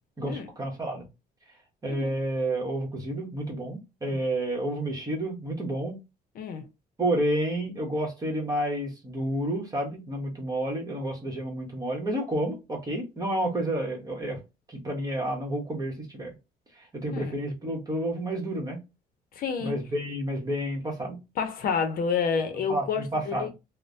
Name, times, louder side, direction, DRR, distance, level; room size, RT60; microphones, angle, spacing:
voice 1, 0.2-1.1 1.8-6.0 7.0-14.4 14.7-16.3 16.8-18.8 19.6-21.2 22.7-23.5, right 1 dB, 20° right, 1.1 m, -30 dB
voice 2, 6.4-6.7 17.1-17.4 19.3-19.7 21.4-23.5, left 6 dB, 60° left, 0.7 m, -29 dB
3.1 x 2.1 x 2.6 m
cardioid pair, 110°, 17 cm